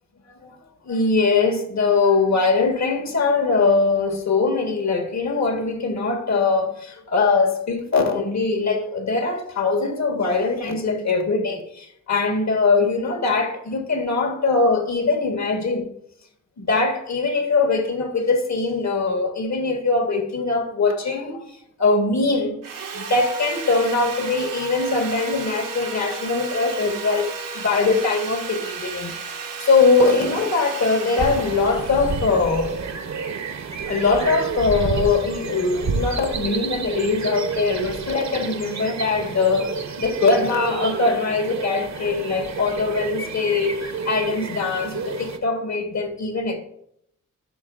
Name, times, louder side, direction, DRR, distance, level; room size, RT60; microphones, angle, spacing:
voice 1, 0.8-15.9 16.6-21.4 21.8-22.6 22.9-29.1 29.6-32.8 33.9-46.6, left 4 dB, 60° left, 1.5 m, -22 dB
Sawing, 22.6-33.7, right 4 dB, 90° right, 1.2 m, -34 dB
sound 1, 31.2-45.4, right 5 dB, 60° right, 0.9 m, -30 dB
11.5 x 6.2 x 2.5 m
cardioid pair, 55°, 32 cm